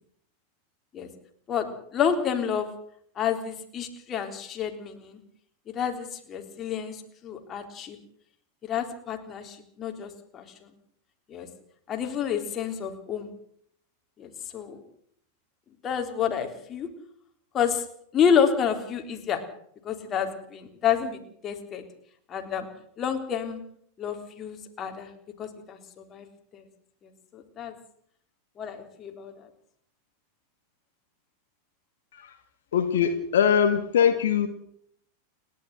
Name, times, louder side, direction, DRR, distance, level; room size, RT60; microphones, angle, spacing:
voice 1, 1.5-2.7 3.2-5.2 5.7-8.0 8.6-10.5 11.3-11.5 11.9-13.3 14.2-14.8 15.8-16.9 17.5-17.8 18.1-19.4 19.8-21.8 22.3-22.7 23.0-23.6 24.0-25.1 25.4-26.3 26.5-26.6 27.3-27.7 28.6-29.3, left 7 dB, 25° left, 4 dB, 3.8 m, -29 dB
voice 2, 32.7-34.5, left 8 dB, 60° left, 7 dB, 1.9 m, -22 dB
29.5 x 11.5 x 7.9 m, 0.66 s
figure-of-eight pair, 90°, 0 cm